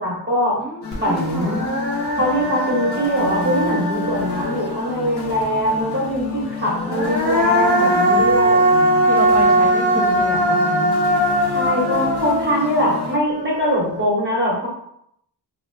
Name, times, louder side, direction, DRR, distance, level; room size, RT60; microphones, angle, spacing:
voice 1, 0.0-0.6 1.0-1.6 2.2-6.2 6.5-8.7 11.4-14.7, equal, 25° right, -4 dB, 1.1 m, -22 dB
voice 2, 0.6-1.6 8.8-10.9, left 2 dB, ahead, -5 dB, 0.3 m, -29 dB
sound 1, 0.8-13.2, left 5 dB, 65° left, 0.7 m, -31 dB
Human voice, 0.9-1.0 1.4-5.0 6.7-13.9, right 1 dB, 40° left, 1.0 m, -20 dB
2.7 x 2.6 x 3.2 m, 0.74 s
wide cardioid pair, 145°, 43 cm